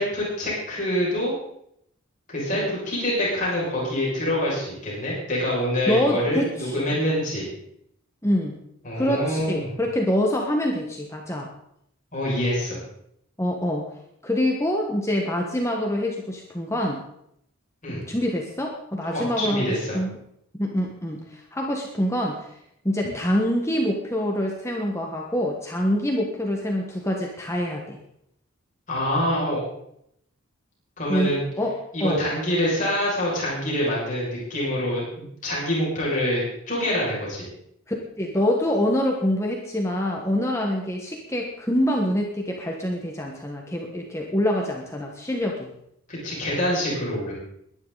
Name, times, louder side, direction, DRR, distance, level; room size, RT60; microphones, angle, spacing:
voice 1, 0.0-1.3 2.3-7.5 8.8-9.7 12.1-12.8 17.8-18.0 19.1-20.0 28.9-29.6 31.0-31.4 31.9-37.4 46.1-47.3, left 1 dB, 35° left, -5 dB, 6.4 m, -26 dB
voice 2, 5.9-6.9 8.2-8.6 9.0-11.5 13.4-13.8 14.2-17.0 17.9-19.6 19.9-20.1 20.6-22.5 22.8-28.0 31.1-31.7 32.0-32.2 38.2-45.7, equal, 15° left, 0 dB, 1.4 m, -25 dB
21.5 x 11.0 x 4.1 m, 0.74 s
head